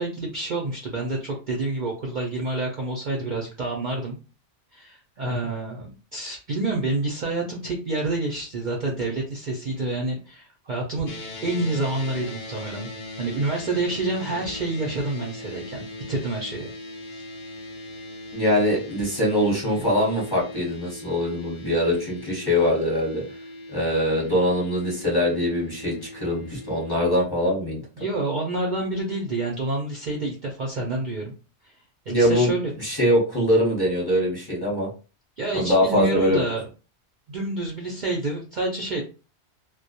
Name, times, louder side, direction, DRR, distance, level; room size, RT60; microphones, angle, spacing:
voice 1, 0.0-4.2 4.7-11.1 11.4-12.9 13.2-16.7 17.1-17.2 28.0-31.3 31.6-31.7 32.1-32.7 35.4-36.7 37.3-39.0, right 2 dB, 55° right, -1 dB, 0.5 m, -28 dB
sound 1, 11.1-27.2, left 1 dB, 55° left, 0.5 m, -40 dB
voice 2, 18.3-23.2 23.7-27.8 32.1-32.5 32.8-34.9 35.5-36.4, equal, 20° left, -4 dB, 0.9 m, -22 dB
2.2 x 2.1 x 2.7 m, 0.34 s
omnidirectional pair, 1.2 m